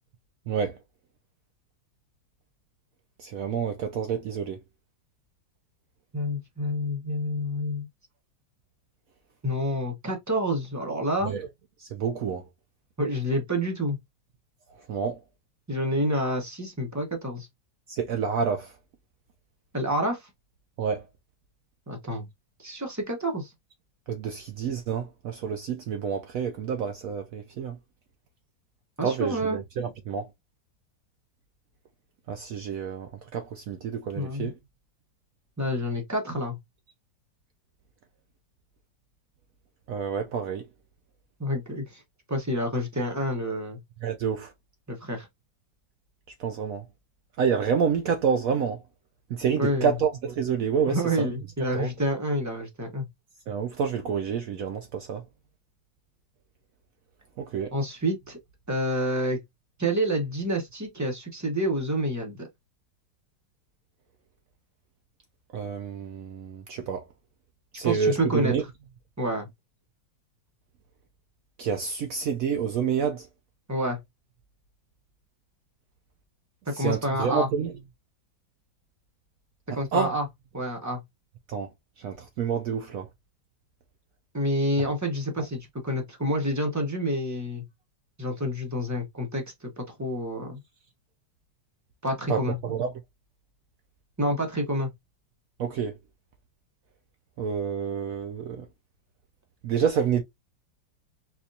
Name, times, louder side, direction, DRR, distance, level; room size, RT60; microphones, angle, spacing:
voice 1, 0.5-0.8 3.2-4.6 11.2-11.5 11.8-12.4 14.9-15.2 17.9-18.7 20.8-21.0 24.1-27.8 29.0-30.3 32.3-34.5 39.9-40.6 44.0-44.5 46.4-46.8 47.4-48.8 49.3-51.3 51.7-51.9 53.5-55.2 57.4-57.7 65.5-67.1 67.7-68.6 71.6-73.3 76.7-77.7 79.7-80.1 81.5-81.7 82.0-83.1 92.3-92.9 95.6-95.9 97.4-98.6 99.6-100.2, right 6 dB, 75° right, 0.7 m, -28 dB
voice 2, 6.1-7.9 9.4-11.3 13.0-14.0 15.7-17.5 19.7-20.3 21.9-22.3 22.6-23.5 29.0-29.6 34.2-34.5 35.6-36.6 41.4-42.0 42.3-43.8 44.9-45.3 49.6-49.9 50.8-53.1 57.7-58.4 58.7-59.4 59.8-62.5 67.8-68.5 69.2-69.5 73.7-74.0 76.7-77.5 79.7-80.3 80.5-81.0 84.3-87.6 88.2-90.6 92.0-92.6 94.2-94.9, equal, 20° right, 0.5 m, -28 dB
4.2 x 2.4 x 2.6 m
omnidirectional pair, 2.0 m